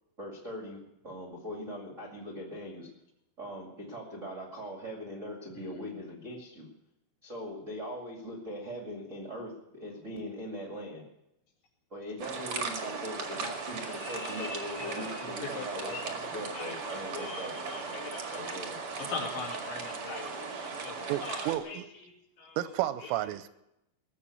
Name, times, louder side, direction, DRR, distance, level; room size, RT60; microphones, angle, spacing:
voice 1, 0.2-2.9 3.4-6.7 7.2-11.1 11.9-17.5 18.3-18.8, equal, 45° right, 1.0 m, -41 dB
sound 1, 12.2-21.6, right 4 dB, 60° right, 1.4 m, -38 dB
voice 2, 13.3-18.6 19.0-22.6 23.0-23.1, left 4 dB, 70° left, 4.8 m, -42 dB
voice 3, 20.7-21.9 22.6-23.5, right 14 dB, 85° right, 3.3 m, -33 dB
20.0 x 7.5 x 8.3 m
omnidirectional pair, 5.7 m